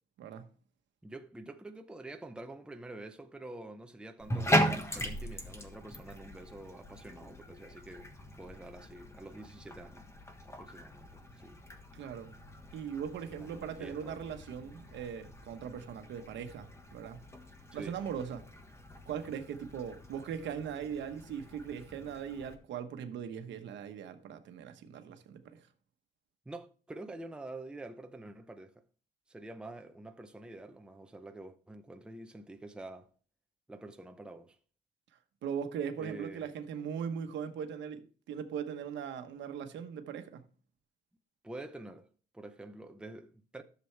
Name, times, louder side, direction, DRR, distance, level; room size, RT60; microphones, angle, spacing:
voice 1, 1.0-10.0 10.4-11.6 13.4-14.2 17.7-18.0 26.5-28.8 29.3-33.1 33.7-34.6 36.0-36.5 41.4-42.1 42.3-43.6, right 2 dB, 5° right, 0.6 m, -47 dB
Bathtub (filling or washing), 4.2-22.5, equal, 15° left, 1.3 m, -39 dB
voice 2, 11.9-12.3 12.7-17.2 17.7-18.4 19.1-25.7 35.4-40.4, right 7 dB, 70° right, 1.1 m, -40 dB
11.0 x 6.9 x 3.3 m
cardioid pair, 135°, 19 cm